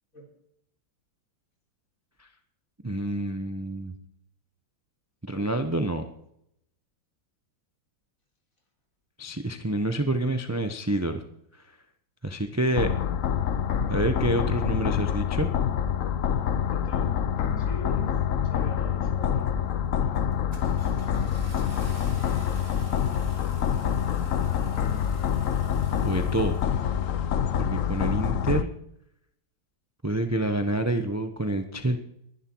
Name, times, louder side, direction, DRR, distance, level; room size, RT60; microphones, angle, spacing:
voice 1, 2.8-3.9 5.3-6.0 9.2-11.2 12.2-12.9 13.9-15.5 26.0-26.6 27.6-28.7 30.0-32.0, right 1 dB, 15° right, 7 dB, 0.5 m, -27 dB
sound 1, 12.7-28.6, left 8 dB, 55° left, 0.9 m, -26 dB
voice 2, 16.7-17.2 17.6-19.6, left 1 dB, 40° left, 1 dB, 4.3 m, -42 dB
Car / Engine starting, 19.4-19.7 20.2-27.1, right 2 dB, 65° right, 3.4 m, -48 dB
21.0 x 11.0 x 4.7 m, 0.76 s
omnidirectional pair, 2.2 m